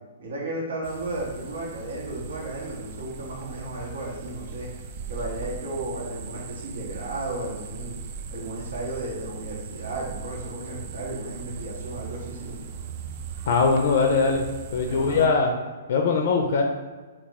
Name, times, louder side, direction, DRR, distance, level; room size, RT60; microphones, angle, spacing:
voice 1, 0.2-4.7 5.1-8.0 8.3-12.7 14.8-15.3, right 2 dB, 80° right, -3 dB, 1.1 m, -34 dB
sound 1, 0.8-15.3, right 5 dB, 45° right, 0.3 m, -39 dB
voice 2, 13.5-14.4 14.7-15.5 15.9-16.6, left 4 dB, 60° left, 2 dB, 0.4 m, -21 dB
3.0 x 2.3 x 3.7 m, 1.4 s
hypercardioid pair, 145°, 0 cm